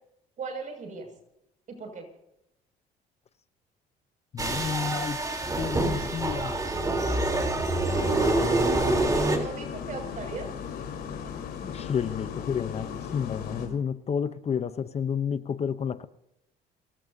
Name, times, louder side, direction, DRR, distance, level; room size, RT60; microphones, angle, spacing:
voice 1, 0.4-1.1 1.7-2.0 9.1-10.5, right 5 dB, 50° right, 4 dB, 6.4 m, -37 dB
voice 2, 4.3-5.2 5.6-6.5 11.6-16.1, left 7 dB, 40° left, 12 dB, 0.8 m, -30 dB
sound 1, 4.4-9.4, right 2 dB, 20° right, 3.7 m, -26 dB
sound 2, 7.9-13.7, left 7 dB, 70° left, 4.0 m, -37 dB
29.5 x 16.5 x 2.8 m, 0.81 s
cardioid pair, 110°, 17 cm